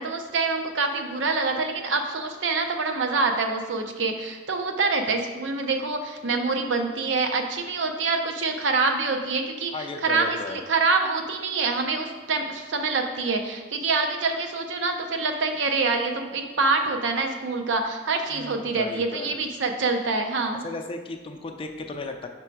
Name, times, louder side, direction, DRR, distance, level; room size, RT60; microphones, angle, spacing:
voice 1, 0.0-20.6, right 3 dB, 80° right, 4 dB, 0.7 m, -26 dB
voice 2, 9.7-10.6 18.3-19.4 20.6-22.3, left 3 dB, 30° left, 4 dB, 0.5 m, -35 dB
5.8 x 3.7 x 4.6 m, 1.3 s
head